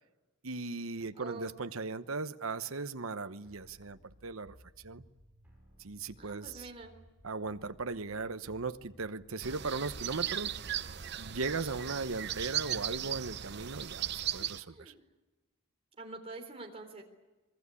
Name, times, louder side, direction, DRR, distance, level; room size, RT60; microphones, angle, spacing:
voice 1, 0.4-4.6 4.8-5.0 5.8-6.7 7.2-10.5 11.2-14.9, right 3 dB, 70° right, 1.1 m, -38 dB
voice 2, 1.1-1.5 6.2-6.9 14.4-15.0 16.0-17.0, right 2 dB, 25° right, 3.6 m, -46 dB
sound 1, 3.4-11.4, equal, 5° right, 7.2 m, -60 dB
sound 2, 9.4-14.6, right 10 dB, 50° right, 0.8 m, -37 dB
25.0 x 22.0 x 8.4 m
head